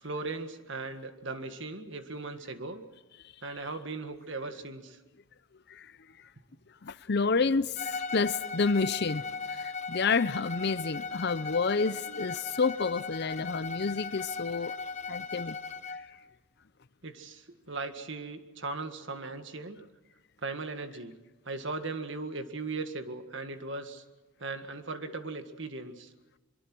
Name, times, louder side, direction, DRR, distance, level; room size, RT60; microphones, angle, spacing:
voice 1, 0.0-2.8 3.4-5.0 17.0-19.8 20.4-21.2 21.5-24.0 24.4-26.1, right 3 dB, 60° right, 1.7 m, -38 dB
voice 2, 6.8-14.8 15.1-15.6 15.9-16.0, left 4 dB, 50° left, 0.6 m, -29 dB
Bowed string instrument, 7.8-16.1, left 5 dB, 35° left, 1.3 m, -38 dB
23.0 x 23.0 x 6.2 m
head